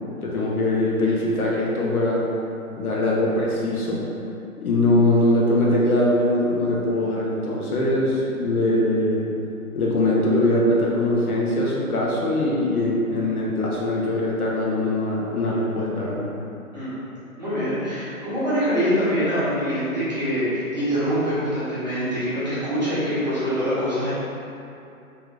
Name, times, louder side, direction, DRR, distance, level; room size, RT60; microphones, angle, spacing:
voice 1, 0.2-2.2 2.8-4.0 4.6-9.3 9.7-16.3, left 1 dB, 85° left, -4 dB, 1.0 m, -22 dB
voice 2, 17.4-24.1, equal, 30° right, -13 dB, 1.1 m, -24 dB
3.4 x 2.4 x 3.1 m, 2.7 s
hypercardioid pair, 180°, 43 cm